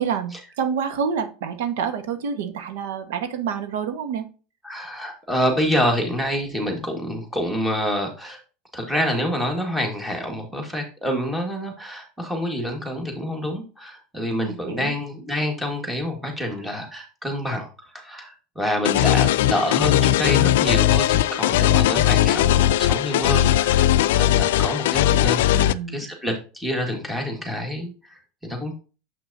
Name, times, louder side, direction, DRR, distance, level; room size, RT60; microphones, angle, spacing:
voice 1, 0.0-4.3 14.4-14.9 25.5-26.1, right 7 dB, 85° right, 8 dB, 1.3 m, -28 dB
voice 2, 4.6-8.4 8.7-28.7, equal, 5° right, 2 dB, 1.7 m, -27 dB
sound 1, 18.8-25.7, left 13 dB, 90° left, 0.3 m, -19 dB
7.4 x 6.0 x 2.7 m, 0.33 s
supercardioid pair, 165°, 0 cm